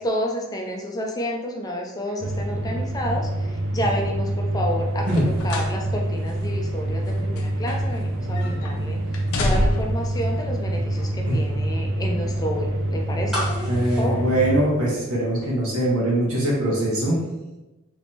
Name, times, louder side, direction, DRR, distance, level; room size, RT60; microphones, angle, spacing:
voice 1, 0.0-9.0 9.4-13.7 14.0-14.2, equal, 15° left, 1 dB, 0.3 m, -30 dB
sound 1, 2.2-14.6, right 1 dB, 60° right, 0.4 m, -26 dB
sound 2, 5.0-5.8 6.2-6.3 7.0-8.1 8.4-8.7 9.1-10.1 10.9-11.1, left 1 dB, 85° left, 0.5 m, -27 dB
voice 2, 8.2-9.0 11.2-11.4 13.7-17.2, right 1 dB, 85° right, -5 dB, 1.3 m, -23 dB
sound 3, 13.3-15.3 15.6-15.7, left 1 dB, ahead, 1.0 m, -32 dB
3.4 x 3.0 x 2.8 m, 1.1 s
head